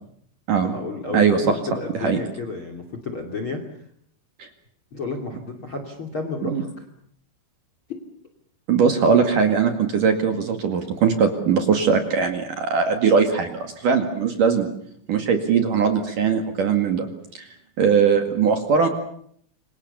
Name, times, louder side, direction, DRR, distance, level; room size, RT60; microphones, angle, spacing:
voice 1, 0.6-3.8 4.9-6.9 7.9-8.0, left 3 dB, 35° left, 6 dB, 2.9 m, -32 dB
voice 2, 1.1-1.5 2.0-2.2 4.4-4.5 6.4-6.6 8.7-14.7 15.1-17.1 17.3-17.5 17.8-18.9, right 6 dB, 55° right, 6 dB, 3.3 m, -20 dB
28.5 x 25.0 x 7.0 m, 0.66 s
omnidirectional pair, 5.2 m